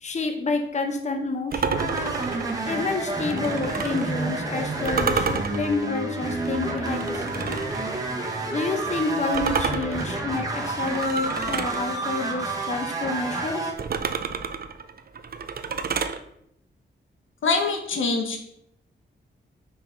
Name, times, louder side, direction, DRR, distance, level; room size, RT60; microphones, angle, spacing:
voice 1, 0.0-1.9 2.6-7.4 8.5-13.7, left 3 dB, 35° left, 5 dB, 0.8 m, -29 dB
sound 1, 1.5-4.1 4.8-7.8 9.3-11.8 13.8-16.2, right 5 dB, 50° right, 0.6 m, -30 dB
sound 2, 1.7-13.7, right 2 dB, 20° right, 1.5 m, -29 dB
voice 2, 17.4-18.4, left 4 dB, 85° left, 4 dB, 1.2 m, -24 dB
5.8 x 4.8 x 5.1 m, 0.75 s
wide cardioid pair, 95°, 20 cm